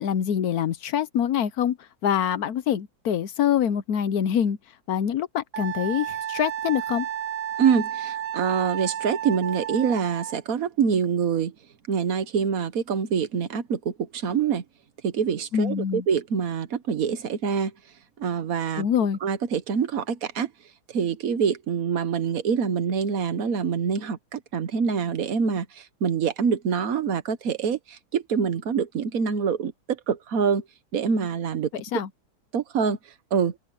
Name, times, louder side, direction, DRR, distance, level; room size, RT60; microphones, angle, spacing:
voice 1, 0.0-1.8 2.0-4.6 4.9-7.0 15.5-16.0 18.8-19.2 31.9-32.1, left 9 dB, 60° left, 1.0 m, -25 dB
Wind instrument woodwind instrument, 5.5-10.4, right 10 dB, 80° right, 1.8 m, -32 dB
voice 2, 7.6-11.5 11.9-14.6 15.0-17.7 18.2-18.8 19.2-20.5 20.9-29.7 30.1-30.6 30.9-31.7 32.5-33.0 33.3-33.5, right 6 dB, 50° right, 1.4 m, -25 dB
omnidirectional pair, 2.2 m